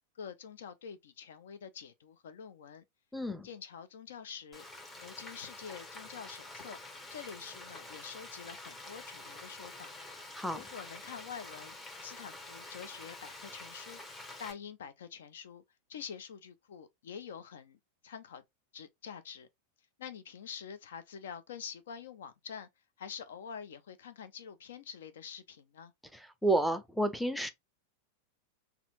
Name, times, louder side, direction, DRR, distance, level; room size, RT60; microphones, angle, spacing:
voice 1, 0.2-2.8 3.4-4.6 5.0-6.8 7.1-10.0 10.5-11.7 12.0-14.0 14.4-15.6 15.9-18.4 18.7-19.5 20.0-22.7 23.0-25.9, left 7 dB, 60° left, 0.5 m, -46 dB
voice 2, 3.1-3.5 10.3-10.6 26.1-27.5, right 1 dB, ahead, 0.6 m, -31 dB
Frying (food), 4.5-14.5, left 2 dB, 15° left, 1.0 m, -48 dB
4.2 x 2.7 x 2.4 m
figure-of-eight pair, 90°, 0 cm